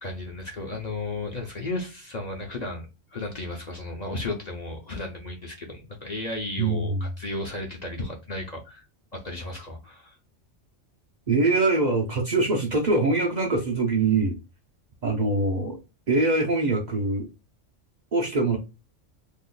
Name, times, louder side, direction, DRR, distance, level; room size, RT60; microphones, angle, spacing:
voice 1, 0.0-8.9 9.1-10.2, left 2 dB, 45° left, 0.7 m, -34 dB
voice 2, 6.6-7.1 11.3-14.4 15.0-15.8 16.1-17.3 18.1-18.6, right 3 dB, 45° right, 0.6 m, -23 dB
2.7 x 2.3 x 3.7 m
omnidirectional pair, 1.3 m